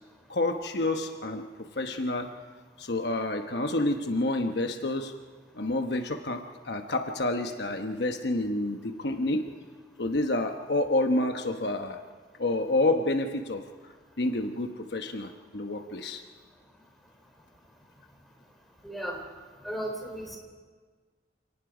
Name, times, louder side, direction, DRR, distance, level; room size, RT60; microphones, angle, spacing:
voice 1, 0.3-2.3 2.8-5.1 5.5-9.4 10.0-12.0 12.4-13.6 14.2-16.2, left 2 dB, 65° left, 5 dB, 1.1 m, -29 dB
voice 2, 18.8-19.2 19.6-20.4, right 1 dB, ahead, 1 dB, 3.9 m, -35 dB
28.0 x 18.5 x 5.0 m, 1.5 s
head